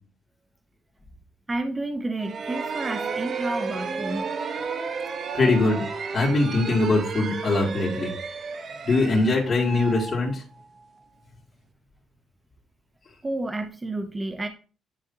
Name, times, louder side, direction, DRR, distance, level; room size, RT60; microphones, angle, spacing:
voice 1, 1.5-4.3 13.2-14.5, right 2 dB, 20° right, 7 dB, 0.7 m, -30 dB
sound 1, 2.2-10.9, right 5 dB, 50° right, 1.0 m, -33 dB
voice 2, 5.3-5.8 6.1-8.1 8.8-10.4, left 2 dB, 40° left, -6 dB, 2.7 m, -22 dB
10.5 x 5.0 x 2.8 m, 0.35 s
cardioid pair, 90°, 0 cm